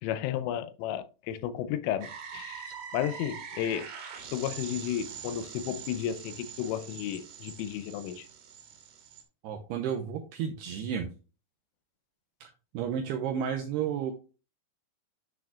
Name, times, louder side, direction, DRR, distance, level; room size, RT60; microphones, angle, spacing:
voice 1, 0.0-3.9 4.3-8.3, left 10 dB, 90° left, 3.3 m, -33 dB
sound 1, 2.0-9.2, right 7 dB, 60° right, 3.2 m, -43 dB
voice 2, 9.4-11.1 12.4-14.1, right 8 dB, 85° right, 2.4 m, -32 dB
10.5 x 6.3 x 2.4 m
omnidirectional pair, 5.6 m